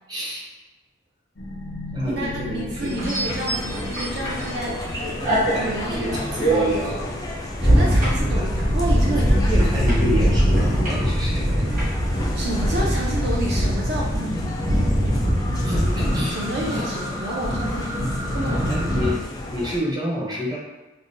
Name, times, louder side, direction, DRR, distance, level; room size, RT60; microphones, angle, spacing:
voice 1, 0.1-0.5 1.9-3.1 5.5-7.1 8.2-8.5 9.0-11.8 15.6-16.4 16.7-16.8 18.7-19.2 19.5-20.6, equal, 20° right, -5 dB, 0.7 m, -28 dB
sound 1, 1.4-10.8, left 1 dB, 85° left, 0.6 m, -36 dB
voice 2, 2.0-5.2 5.6-6.2 7.6-8.5 8.7-9.7 12.4-14.4 16.3-18.9, right 1 dB, 55° right, -3 dB, 0.5 m, -30 dB
sound 2, 2.8-4.8 5.2-19.1, equal, 40° right, 1.4 m, -22 dB
sound 3, 3.2-19.8, left 2 dB, 20° left, 0.3 m, -34 dB
5.4 x 2.1 x 2.6 m, 1.1 s
head